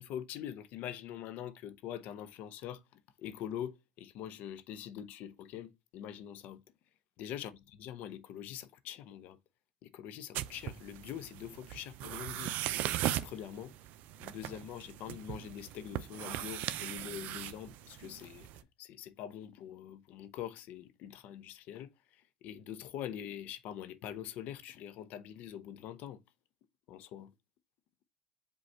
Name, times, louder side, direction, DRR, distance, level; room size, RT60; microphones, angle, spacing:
voice 1, 0.0-6.6 7.2-9.4 9.8-12.6 13.2-13.7 14.2-18.5 18.8-26.2 26.9-27.3, left 10 dB, 65° left, 0.6 m, -44 dB
sound 1, 10.3-18.6, right 13 dB, 65° right, 0.4 m, -39 dB
5.2 x 2.3 x 4.2 m
supercardioid pair, 100°, 3 cm